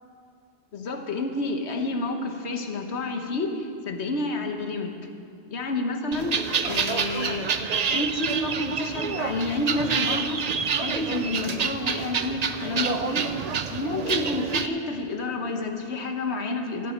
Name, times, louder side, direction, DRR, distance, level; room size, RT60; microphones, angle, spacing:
voice 1, 0.7-4.9 5.5-16.9, left 2 dB, 75° left, 5 dB, 1.4 m, -30 dB
sound 1, 6.1-14.7, right 6 dB, 45° right, 0.6 m, -28 dB
14.0 x 7.7 x 9.7 m, 2.5 s
omnidirectional pair, 1.1 m